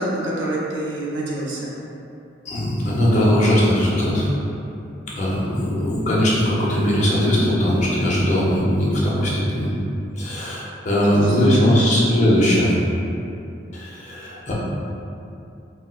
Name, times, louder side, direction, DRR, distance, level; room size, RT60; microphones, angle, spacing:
voice 1, 0.0-1.7 11.2-11.8, right 1 dB, 90° right, -5 dB, 0.6 m, -27 dB
voice 2, 2.5-4.3 5.2-9.7 10.2-12.7 13.7-14.5, equal, 40° left, -7 dB, 0.6 m, -19 dB
4.2 x 2.2 x 2.4 m, 2.7 s
head